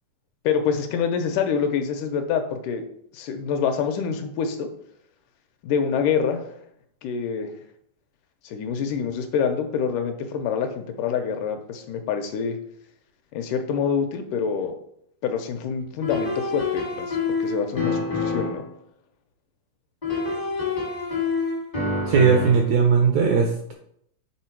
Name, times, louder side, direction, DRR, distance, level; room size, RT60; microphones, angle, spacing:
voice 1, 0.4-2.9 3.1-4.7 5.6-6.5 7.0-7.5 8.4-12.6 13.3-14.8 15.2-18.7, left 6 dB, 80° left, 6 dB, 2.0 m, -26 dB
sound 1, 16.0-18.7 20.0-22.7, left 4 dB, 30° left, 0.7 m, -27 dB
voice 2, 22.1-23.7, right 6 dB, 80° right, 2 dB, 1.6 m, -18 dB
7.5 x 3.7 x 4.4 m, 0.71 s
omnidirectional pair, 3.9 m